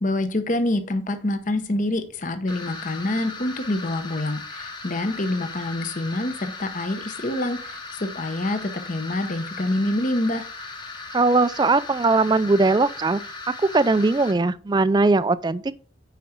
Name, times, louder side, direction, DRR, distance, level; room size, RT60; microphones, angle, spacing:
voice 1, 0.0-10.5, left 1 dB, 40° left, 0.8 m, -26 dB
sound 1, 2.5-14.3, left 3 dB, 20° left, 1.0 m, -37 dB
voice 2, 11.1-13.2 13.6-15.7, right 3 dB, 20° right, 0.3 m, -20 dB
9.2 x 4.9 x 4.5 m
head